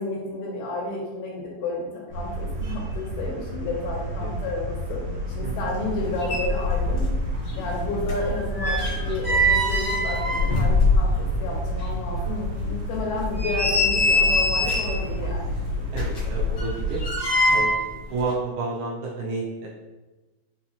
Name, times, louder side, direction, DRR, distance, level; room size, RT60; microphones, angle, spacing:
voice 1, 0.0-5.0 5.3-7.1 7.5-16.3, left 2 dB, 90° left, -3 dB, 2.5 m, -31 dB
sound 1, 2.1-17.2, equal, 60° right, 2.2 m, -30 dB
sound 2, 5.9-6.0 6.2-7.2 7.5-11.4 11.8-11.9 12.4-12.5 13.1-15.0 15.9-17.9 18.2-18.3, left 1 dB, 70° left, 1.0 m, -23 dB
voice 2, 15.9-17.0 17.5-19.7, right 3 dB, 80° right, -5 dB, 1.7 m, -31 dB
5.7 x 2.9 x 2.7 m, 1.2 s
omnidirectional pair, 4.2 m